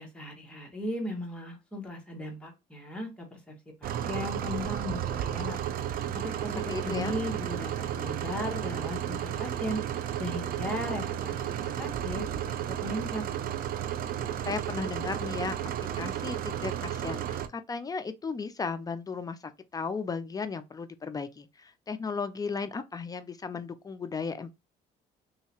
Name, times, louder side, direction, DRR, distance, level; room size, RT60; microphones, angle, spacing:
voice 1, 0.0-3.6 3.8-5.6 6.2-9.8 10.2-13.3, left 1 dB, 5° left, 1.3 m, -37 dB
sound 1, 3.8-17.5, right 10 dB, 60° right, 0.4 m, -33 dB
voice 2, 6.7-7.2 14.5-24.5, left 5 dB, 20° left, 0.4 m, -35 dB
3.1 x 2.8 x 3.0 m
cardioid pair, 110°, 17 cm